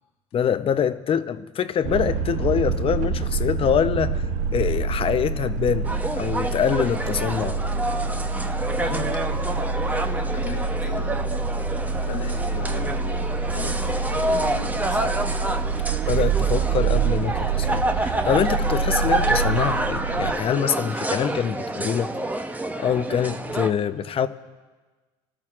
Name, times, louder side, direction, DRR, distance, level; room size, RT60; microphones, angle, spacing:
voice 1, 0.3-5.9 6.2-7.6 16.1-22.1 22.8-24.3, left 8 dB, 40° left, 12 dB, 0.7 m, -24 dB
sound 1, 1.8-20.3, right 5 dB, 60° right, 0.6 m, -26 dB
sound 2, 5.9-23.7, right 2 dB, 10° right, 0.8 m, -28 dB
voice 2, 8.8-11.2 12.1-15.3, left 6 dB, 85° left, 2 dB, 1.8 m, -38 dB
24.0 x 13.0 x 2.5 m, 1.3 s
supercardioid pair, 85°, 15 cm